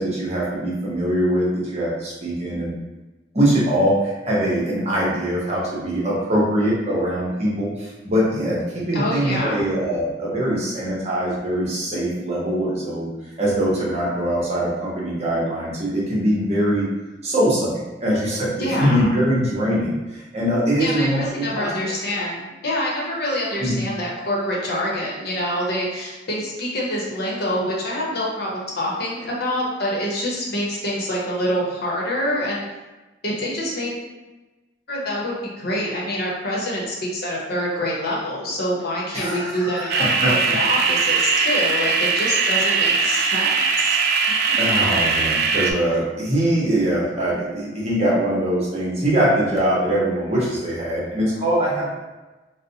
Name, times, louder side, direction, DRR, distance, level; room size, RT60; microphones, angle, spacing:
voice 1, 0.0-2.7 3.3-13.1 13.4-16.9 17.2-17.7 18.0-21.7 23.6-23.8 39.1-40.6 44.6-51.9, right 1 dB, 35° right, -6 dB, 0.9 m, -22 dB
voice 2, 8.9-9.6 18.6-19.1 20.8-32.6 33.2-33.9 34.9-44.0 44.7-44.8, left 1 dB, 60° left, -4 dB, 0.8 m, -26 dB
sound 1, 39.9-45.7, right 4 dB, 60° right, 0.3 m, -20 dB
4.0 x 2.1 x 2.7 m, 1.1 s
head